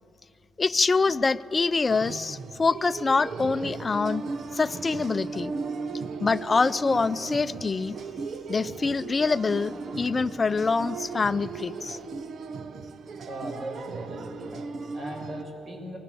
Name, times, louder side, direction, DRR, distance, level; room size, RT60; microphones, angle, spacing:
voice 1, 0.6-4.2 4.5-5.5 6.2-7.9 8.5-12.0, left 4 dB, 30° left, 13 dB, 0.6 m, -25 dB
sound 1, 1.9-15.4, right 4 dB, 55° right, 1.1 m, -37 dB
voice 2, 13.3-16.0, right 1 dB, 40° right, 2 dB, 6.7 m, -38 dB
27.5 x 19.5 x 7.0 m, 2.8 s
cardioid pair, 90°, 0 cm